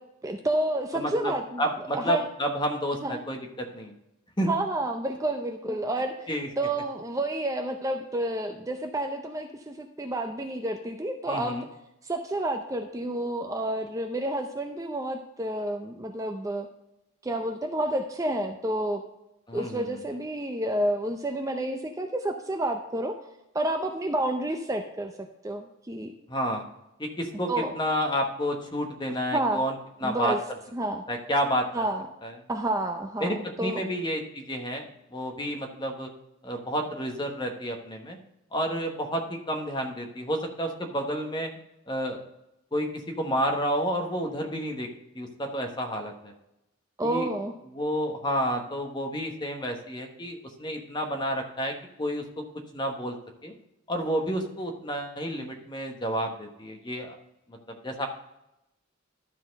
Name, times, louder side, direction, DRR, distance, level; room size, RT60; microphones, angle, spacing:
voice 1, 0.2-1.6 1.9-2.2 3.0-3.2 4.5-6.3 6.6-11.7 12.0-16.7 17.2-19.0 19.5-23.2 23.5-25.1 25.4-26.1 27.5-27.7 29.3-29.6 30.0-30.4 30.7-31.0 31.7-32.1 32.5-33.8 47.0-47.5, right 1 dB, 15° right, 5 dB, 0.5 m, -29 dB
voice 2, 0.9-3.9 4.4-4.5 5.7-5.8 6.3-6.5 11.3-11.6 19.5-20.0 26.3-26.6 27.0-30.4 31.1-31.7 32.2-32.3 33.2-36.1 36.4-38.2 38.5-41.5 41.9-42.2 42.7-42.9 43.2-44.9 45.1-46.3 47.0-47.3 47.7-52.4 52.7-53.1 53.4-53.5 53.9-57.2 57.5-57.6 57.8-58.1, equal, 20° left, 3 dB, 1.2 m, -30 dB
12.0 x 4.2 x 5.3 m, 0.88 s
head